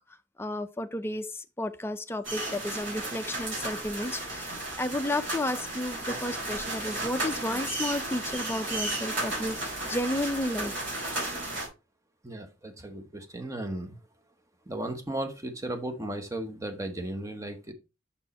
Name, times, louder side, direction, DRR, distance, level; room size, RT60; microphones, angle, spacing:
voice 1, 0.4-10.7, left 1 dB, 10° left, 0.4 m, -32 dB
sound 1, 2.2-11.7, right 2 dB, 60° right, 4.0 m, -34 dB
voice 2, 12.2-14.0 14.7-17.7, right 1 dB, 15° right, 0.9 m, -35 dB
7.0 x 4.5 x 4.1 m
head